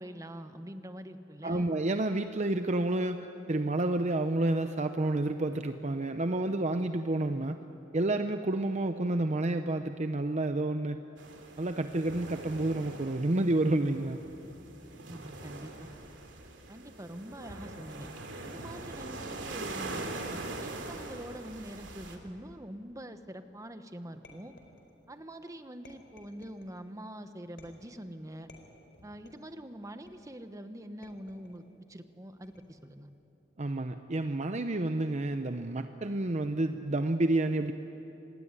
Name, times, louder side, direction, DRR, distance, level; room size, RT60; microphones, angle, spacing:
voice 1, 0.0-1.7 15.0-15.9 16.7-18.1 18.4-24.6 25.1-28.5 29.0-33.1, equal, 20° right, 8 dB, 1.2 m, -45 dB
voice 2, 1.4-7.6 7.9-11.0 11.6-14.2 33.6-37.7, right 2 dB, 40° right, 8 dB, 0.7 m, -29 dB
sound 1, 11.2-22.2, right 2 dB, 70° right, 3.0 m, -42 dB
sound 2, 24.2-25.2 25.8-26.8 27.6-28.0 28.5-29.5 30.1-30.5 31.0-31.7 32.4-32.9, left 2 dB, 65° left, 4.3 m, -57 dB
26.5 x 20.0 x 9.8 m, 2.9 s
head